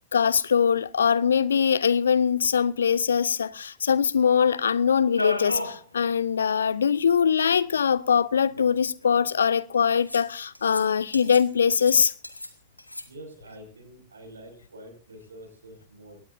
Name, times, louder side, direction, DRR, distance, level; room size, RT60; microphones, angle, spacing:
voice 1, 0.1-12.1, left 7 dB, 70° left, 0.6 m, -22 dB
sound 1, 5.2-5.8 6.2-6.3 6.5-6.6 7.7-7.8 8.5-9.1 10.1-10.3 10.5-10.8 11.1-11.5 11.7-12.5 12.8-13.0, left 1 dB, 85° left, 1.5 m, -33 dB
voice 2, 13.0-16.2, right 1 dB, 75° right, 6.3 m, -46 dB
22.5 x 18.0 x 2.7 m
figure-of-eight pair, 90°, 0 cm